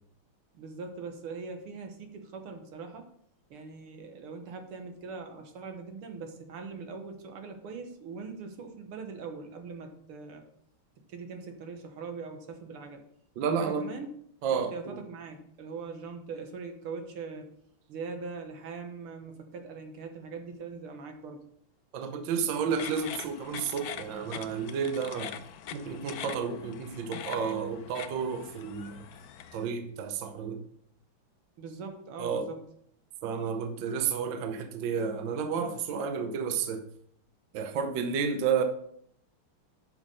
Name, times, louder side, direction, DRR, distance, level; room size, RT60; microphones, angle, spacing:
voice 1, 0.5-3.0 3.5-10.4 11.1-13.0 13.6-14.1 14.4-17.5 17.9-21.4 31.6-32.6, right 4 dB, 80° right, 2.1 m, -41 dB
voice 2, 13.4-13.9 14.4-14.9 21.9-25.3 25.7-29.0 29.5-30.6 32.2-32.5 33.2-36.8 37.5-38.6, right 6 dB, 65° right, 1.4 m, -31 dB
sound 1, 22.7-29.6, left 9 dB, 85° left, 0.8 m, -43 dB
9.0 x 6.1 x 5.5 m
omnidirectional pair, 2.4 m